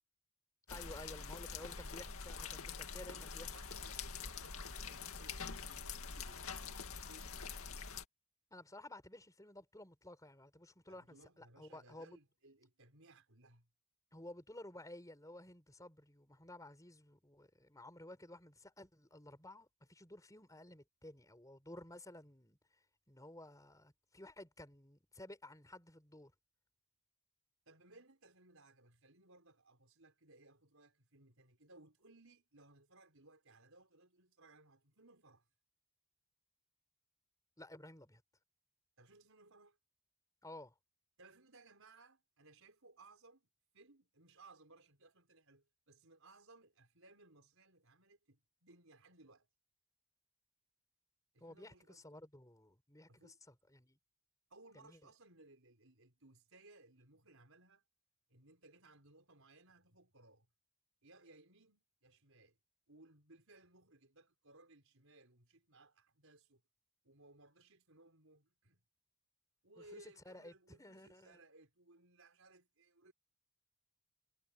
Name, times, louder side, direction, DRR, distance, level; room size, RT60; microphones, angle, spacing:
sound 1, 0.7-8.0, left 5 dB, 70° left, 2.3 m, -45 dB
voice 1, 0.7-3.5 8.5-12.2 14.1-26.3 37.6-38.2 40.4-40.7 51.4-54.0 54.7-55.1 69.8-71.4, left 1 dB, 15° left, 4.6 m, -54 dB
voice 2, 3.0-7.7 10.9-13.7 27.7-35.5 39.0-39.8 41.2-43.5 43.7-49.5 51.3-52.0 53.1-53.4 54.5-57.8 58.3-60.5 61.0-62.6 62.9-66.6 67.0-68.8 69.6-73.1, right 2 dB, 60° right, 5.8 m, -63 dB
head